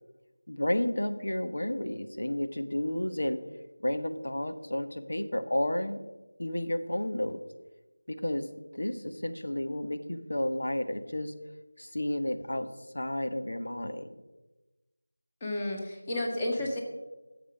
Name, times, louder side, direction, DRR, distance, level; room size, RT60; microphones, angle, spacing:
voice 1, 0.5-3.4 3.8-6.0 6.4-7.4 8.1-8.5 8.7-11.3 11.8-12.7 12.9-14.1, left 1 dB, 75° left, 8 dB, 1.3 m, -31 dB
voice 2, 15.4-16.8, left 1 dB, 20° left, 0 dB, 1.7 m, -31 dB
11.5 x 7.3 x 6.1 m, 1.1 s
figure-of-eight pair, 170°, 0 cm